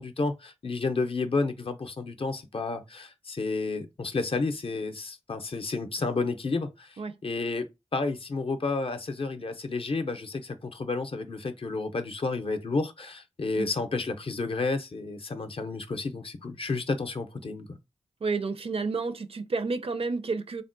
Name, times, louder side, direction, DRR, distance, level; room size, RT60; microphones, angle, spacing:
voice 1, 0.0-17.8, left 3 dB, 50° left, 0.5 m, -31 dB
voice 2, 18.2-20.6, right 4 dB, 50° right, 0.4 m, -30 dB
3.5 x 2.1 x 2.5 m
cardioid pair, 55°, 13 cm